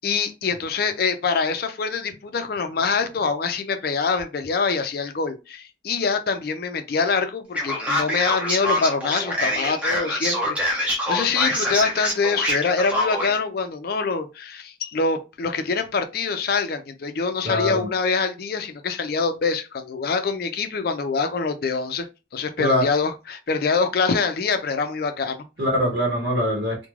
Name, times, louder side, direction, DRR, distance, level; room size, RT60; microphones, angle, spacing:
voice 1, 0.0-22.1 22.3-25.5, left 4 dB, 55° left, 0.4 m, -25 dB
Male speech man speaking, 7.6-13.4, left 1 dB, 5° right, 0.7 m, -25 dB
voice 2, 17.4-17.9 22.6-22.9 25.6-26.9, left 1 dB, 65° right, 0.9 m, -23 dB
3.1 x 2.1 x 2.3 m
head